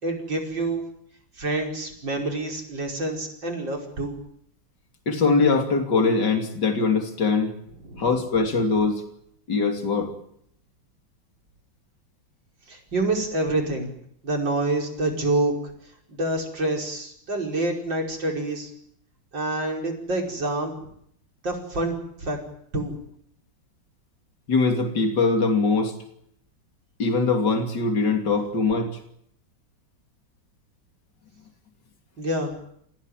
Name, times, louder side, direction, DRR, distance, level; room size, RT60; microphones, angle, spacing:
voice 1, 0.0-0.8 1.4-4.2 7.8-8.1 12.7-13.9 14.2-15.5 16.1-18.7 19.3-20.9 21.4-22.4 22.7-23.0 32.2-32.5, right 2 dB, 70° right, 1 dB, 5.9 m, -27 dB
voice 2, 5.1-7.5 8.0-9.0 9.5-10.1 24.5-25.9 27.0-29.0, left 4 dB, 65° left, 4 dB, 3.6 m, -22 dB
29.0 x 16.5 x 9.2 m, 0.70 s
omnidirectional pair, 2.1 m